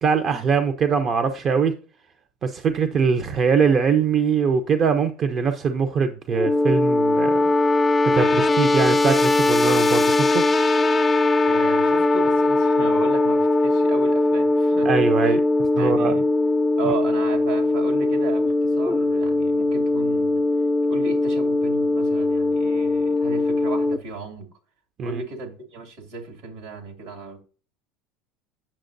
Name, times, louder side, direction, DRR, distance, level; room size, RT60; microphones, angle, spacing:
voice 1, 0.0-1.7 2.4-7.5 8.1-10.4 14.8-15.4 15.8-16.1 25.0-25.2, right 6 dB, 40° right, 0.6 m, -22 dB
sound 1, 6.3-24.0, left 2 dB, 15° left, 0.5 m, -20 dB
voice 2, 11.4-14.9 15.2-15.4 15.7-16.3 16.8-20.4 20.9-24.5 25.0-27.4, right 4 dB, 75° right, 2.2 m, -35 dB
8.7 x 6.3 x 2.6 m
hypercardioid pair, 90°, 0 cm